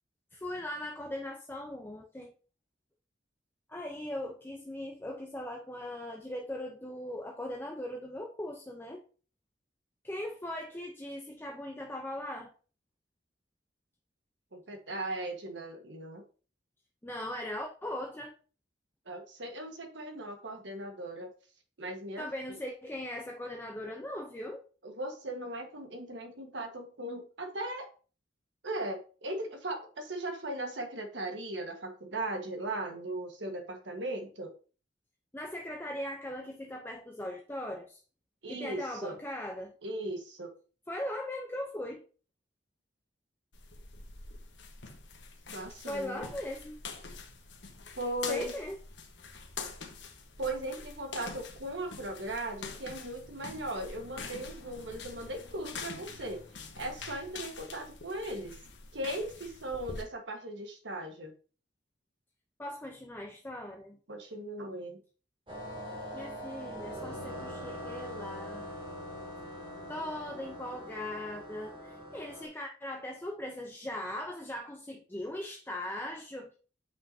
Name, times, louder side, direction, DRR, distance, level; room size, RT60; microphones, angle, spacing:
voice 1, 0.3-2.3 3.7-9.0 10.0-12.5 17.0-18.3 22.2-24.6 35.3-38.0 38.5-39.7 40.9-42.0 45.9-46.8 48.3-48.8 62.6-64.0 66.1-68.8 69.9-76.6, left 1 dB, 10° left, 1 dB, 0.7 m, -39 dB
voice 2, 14.5-16.2 19.1-21.3 21.8-22.3 24.8-27.9 28.6-34.5 38.4-39.2 39.8-40.5 45.5-46.2 48.0-48.5 50.4-56.4 56.8-58.6 58.9-61.3 64.1-65.0, right 1 dB, 80° right, 4 dB, 1.5 m, -38 dB
sound 1, 43.5-60.0, left 4 dB, 75° left, 1.3 m, -45 dB
sound 2, 65.5-72.5, equal, 30° right, 2.4 m, -42 dB
8.1 x 5.6 x 2.8 m, 0.37 s
head